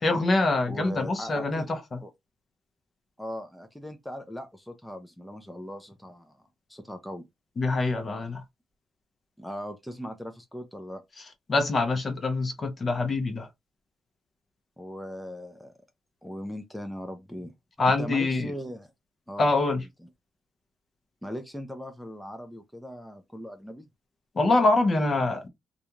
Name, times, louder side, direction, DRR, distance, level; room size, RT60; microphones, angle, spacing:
voice 1, 0.0-2.0 7.6-8.4 11.5-13.5 17.8-18.5 19.4-19.8 24.4-25.5, left 2 dB, 40° left, 0.7 m, -25 dB
voice 2, 0.7-1.7 2.0-2.1 3.2-7.3 9.4-11.0 14.8-15.7 16.2-17.5 17.9-18.9 19.3-20.1 21.2-23.9, equal, 5° left, 0.5 m, -39 dB
2.4 x 2.3 x 2.8 m
cardioid pair, 90°, 0 cm